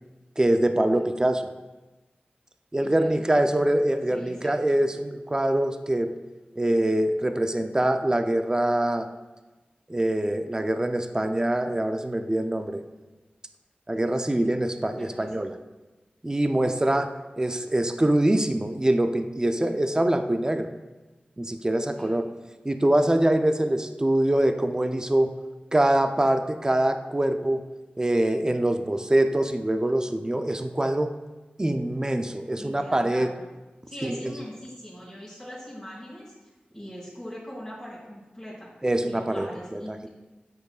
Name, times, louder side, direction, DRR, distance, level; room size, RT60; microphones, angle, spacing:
voice 1, 0.4-1.5 2.7-6.1 6.6-9.1 9.9-12.8 13.9-15.5 16.2-17.1 17.4-20.7 21.4-22.2 22.6-25.3 25.7-27.6 28.0-31.1 31.6-33.3 34.0-34.3 38.8-40.0, right 1 dB, 20° right, 7 dB, 0.4 m, -24 dB
voice 2, 2.8-3.6 4.1-4.9 15.0-15.3 22.0-22.1 32.6-33.5 33.9-36.3 36.7-38.7 39.0-40.1, equal, 5° left, -10 dB, 2.2 m, -41 dB
8.1 x 6.4 x 2.4 m, 1.2 s
wide cardioid pair, 70°, 3 cm